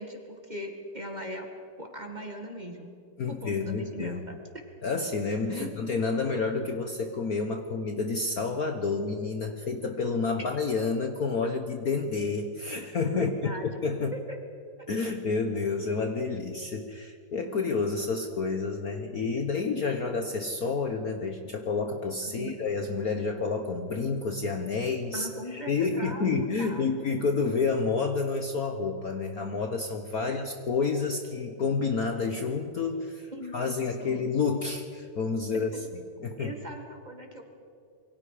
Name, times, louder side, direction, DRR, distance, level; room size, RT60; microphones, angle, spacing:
voice 1, 0.0-1.5 1.8-2.9 3.3-4.4 5.6-5.8 13.1-13.7 14.1-14.4 22.2-22.6 25.1-26.9 30.2-30.4 33.3-34.3 35.7-35.8 36.4-37.4, equal, 20° right, 3 dB, 2.1 m, -39 dB
voice 2, 3.2-4.2 4.8-13.3 13.6-14.1 14.9-35.7 36.2-36.6, left 4 dB, 50° left, 5 dB, 1.4 m, -29 dB
26.5 x 23.5 x 5.0 m, 2.5 s
omnidirectional pair, 2.4 m